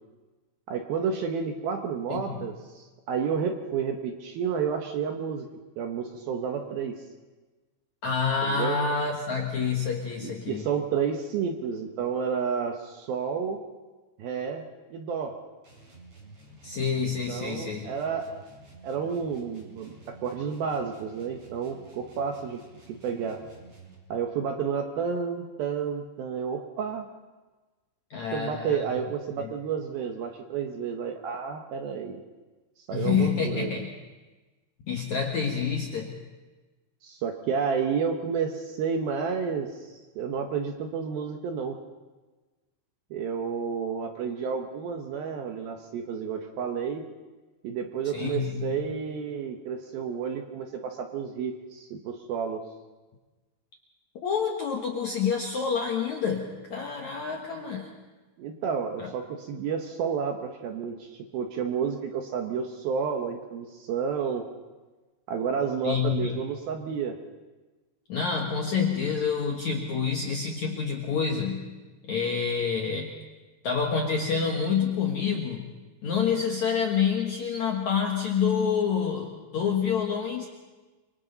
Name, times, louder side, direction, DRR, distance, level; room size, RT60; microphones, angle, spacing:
voice 1, 0.7-5.5 5.8-7.0 8.4-8.8 10.2-13.6 14.2-14.6 14.9-15.3 17.3-18.4 18.8-22.6 22.9-23.4 24.1-27.1 28.3-32.2 32.9-33.8 37.0-41.8 43.1-47.0 47.6-52.6 58.4-64.4 65.3-67.2, right 6 dB, 70° right, 4 dB, 2.4 m, -31 dB
voice 2, 2.1-2.4 8.0-10.7 16.6-17.9 28.1-28.9 29.4-29.5 32.9-33.9 34.9-36.2 48.1-48.9 54.2-57.9 59.0-59.1 65.8-66.4 68.1-71.7 72.1-73.1 73.6-75.7 76.0-80.5, left 6 dB, 65° left, 1 dB, 1.8 m, -28 dB
sound 1, 15.6-24.1, right 2 dB, 30° right, 5.3 m, -51 dB
28.5 x 24.0 x 4.0 m, 1.2 s
omnidirectional pair, 5.3 m